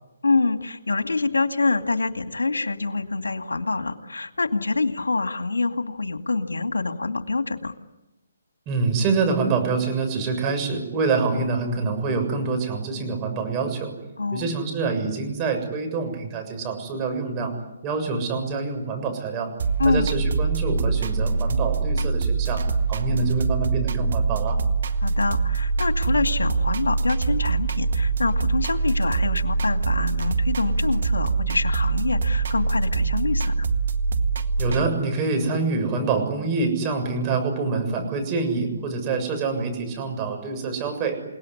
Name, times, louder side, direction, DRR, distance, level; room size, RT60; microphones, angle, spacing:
voice 1, 0.2-7.7 14.2-14.5 19.8-20.1 25.0-33.7, left 3 dB, 85° left, 7 dB, 2.3 m, -25 dB
voice 2, 8.7-13.9 14.3-17.5 17.8-19.5 19.9-22.6 22.9-24.6 34.6-41.2, right 4 dB, 25° right, 5 dB, 7.0 m, -26 dB
sound 1, 19.6-34.8, right 4 dB, 65° right, 1.9 m, -24 dB
29.0 x 19.0 x 9.9 m, 0.97 s
hypercardioid pair, 145°, 0 cm